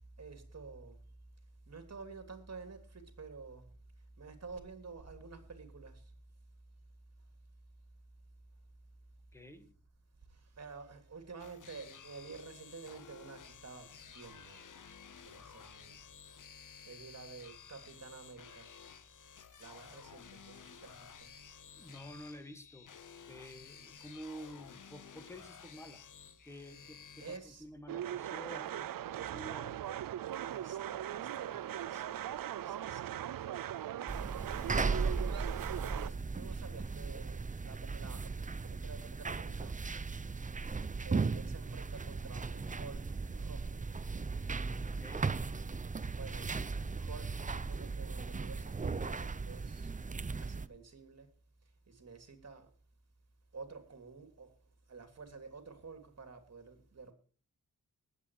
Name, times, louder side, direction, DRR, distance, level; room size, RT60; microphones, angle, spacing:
voice 1, 0.2-1.0 1.7-3.7 4.2-6.1 10.3-14.8 15.1-16.0 16.9-18.7 19.6-21.3 23.2-23.3 27.2-27.7 28.5-28.8 30.4-33.6 34.7-39.9 41.0-43.8 46.1-46.5 47.0-51.3 51.9-52.7 53.5-54.5 54.9-57.1, right 4 dB, 50° right, 3.1 m, -51 dB
voice 2, 9.3-9.7 21.8-22.9 23.2-26.1 26.4-29.8 44.8-45.3, equal, 10° left, 1.9 m, -50 dB
sound 1, 11.4-27.4, left 7 dB, 65° left, 1.1 m, -54 dB
sound 2, 27.9-36.1, right 11 dB, 80° right, 0.6 m, -39 dB
sound 3, 34.1-50.7, right 4 dB, 25° right, 0.6 m, -37 dB
19.5 x 8.4 x 4.8 m
wide cardioid pair, 120°, 33 cm